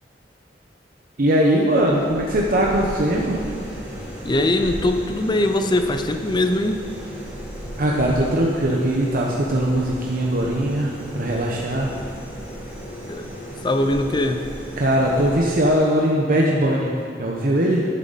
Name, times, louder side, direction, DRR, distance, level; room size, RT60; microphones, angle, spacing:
voice 1, 1.2-3.4 7.8-11.9 14.8-17.9, right 1 dB, 55° right, -2 dB, 1.0 m, -20 dB
sound 1, 1.6-16.2, equal, 15° right, 2.7 m, -35 dB
voice 2, 4.2-6.8 13.1-13.3 13.6-14.4, left 1 dB, 25° left, 7 dB, 0.6 m, -21 dB
11.5 x 10.0 x 4.1 m, 2.2 s
head